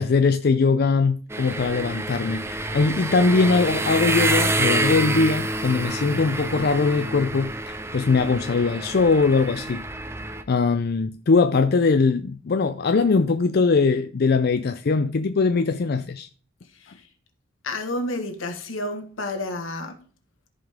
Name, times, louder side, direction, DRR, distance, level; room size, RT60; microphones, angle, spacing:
voice 1, 0.0-9.8 10.5-16.3, left 4 dB, 50° left, 0.5 m, -21 dB
sound 1, 1.3-10.4, right 2 dB, 15° right, 0.6 m, -27 dB
voice 2, 16.7-17.1 17.6-20.0, left 1 dB, 85° left, 1.6 m, -30 dB
14.0 x 5.3 x 3.6 m
head